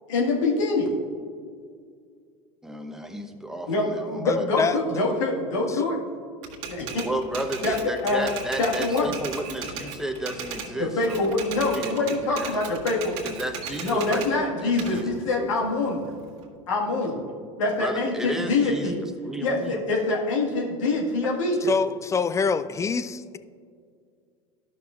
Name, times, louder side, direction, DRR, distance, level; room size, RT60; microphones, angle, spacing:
voice 1, 0.1-0.9 3.7-6.0 6.7-7.1 7.6-7.7 8.0-8.3 8.6-9.1 10.8-13.1 13.8-16.1 16.7-17.2 17.6-19.0 19.4-21.6, left 3 dB, 75° left, -2 dB, 1.6 m, -25 dB
voice 2, 2.6-4.5 7.0-12.5 13.2-15.7 17.8-19.8, right 1 dB, 5° right, 5 dB, 0.9 m, -33 dB
voice 3, 4.2-4.8 5.7-5.9 21.6-23.4, left 5 dB, 20° left, 12 dB, 0.3 m, -26 dB
Typewriter, 6.4-10.7 11.0-14.3 14.8-16.4, right 6 dB, 55° right, 1.6 m, -36 dB
13.0 x 6.0 x 2.4 m, 2.1 s
hypercardioid pair, 80°, 16 cm